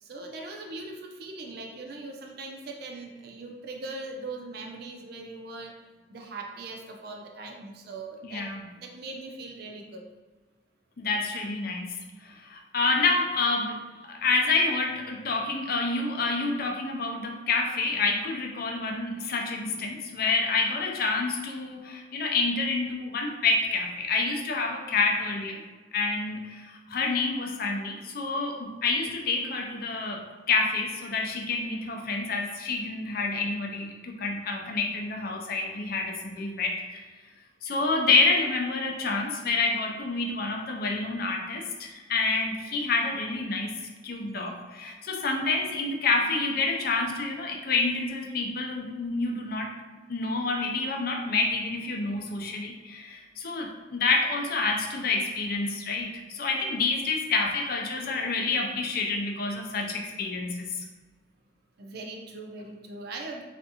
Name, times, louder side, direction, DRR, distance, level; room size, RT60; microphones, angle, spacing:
voice 1, 0.0-5.7 6.1-8.5 8.8-10.0 14.0-14.1 31.0-31.2 38.6-38.8 42.7-42.8 57.5-57.6 61.8-63.4, right 3 dB, 55° right, 2 dB, 0.4 m, -40 dB
voice 2, 8.2-8.6 11.0-13.8 14.1-25.6 25.9-37.0 37.6-49.7 50.1-60.8, left 3 dB, 55° left, 2 dB, 0.5 m, -28 dB
3.4 x 2.5 x 2.7 m, 1.3 s
head